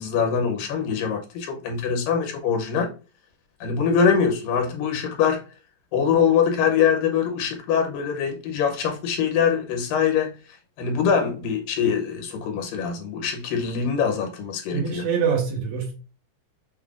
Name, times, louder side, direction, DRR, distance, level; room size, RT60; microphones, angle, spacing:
voice 1, 0.0-2.9 3.6-5.4 5.9-10.3 10.8-15.1, left 7 dB, 85° left, 2.5 m, -23 dB
voice 2, 14.7-15.9, right 6 dB, 70° right, 2.1 m, -24 dB
6.3 x 2.3 x 2.4 m
omnidirectional pair, 3.8 m